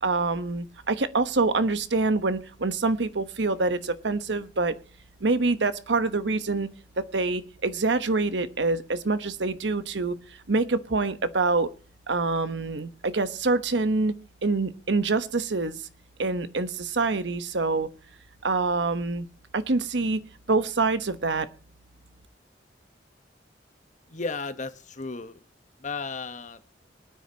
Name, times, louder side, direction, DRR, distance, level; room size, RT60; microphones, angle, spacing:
voice 1, 0.0-4.7 5.2-6.7 7.0-10.2 10.5-11.7 12.1-14.1 14.4-15.8 16.2-17.9 18.4-19.3 19.5-20.2 20.5-21.5, right 3 dB, 85° right, 12 dB, 1.1 m, -25 dB
voice 2, 24.1-25.4 25.8-26.6, left 4 dB, 45° left, 11 dB, 1.1 m, -34 dB
23.5 x 9.4 x 2.9 m, 0.35 s
head